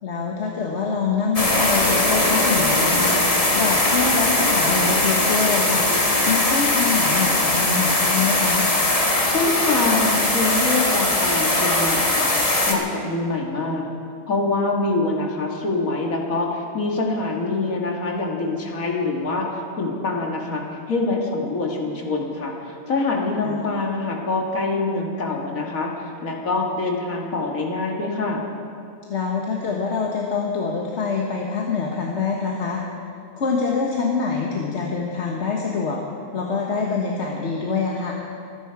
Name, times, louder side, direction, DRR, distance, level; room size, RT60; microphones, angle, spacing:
voice 1, 0.0-8.7 23.4-23.6 29.1-32.8 33.4-36.0 36.3-38.1, left 5 dB, 55° left, -1 dB, 1.4 m, -25 dB
sound 1, 1.4-12.8, left 2 dB, 25° left, 1.4 m, -20 dB
voice 2, 9.3-12.3 12.7-13.9 14.3-19.5 19.8-28.4, left 3 dB, 85° left, 0 dB, 2.4 m, -25 dB
24.5 x 10.5 x 4.7 m, 2.6 s
omnidirectional pair, 1.4 m